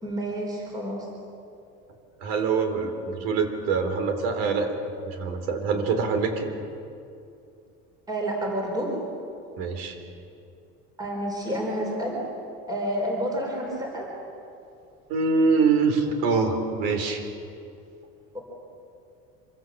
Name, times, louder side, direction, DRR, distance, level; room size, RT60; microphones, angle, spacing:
voice 1, 0.0-1.1 8.1-8.9 11.0-12.2 12.7-14.1 18.3-18.4, right 1 dB, 15° right, -1 dB, 4.5 m, -29 dB
voice 2, 2.2-4.7 5.0-6.5 9.6-10.0 15.1-17.2, right 4 dB, 80° right, 7 dB, 4.1 m, -24 dB
26.5 x 24.0 x 7.6 m, 2.6 s
cardioid pair, 170°, 29 cm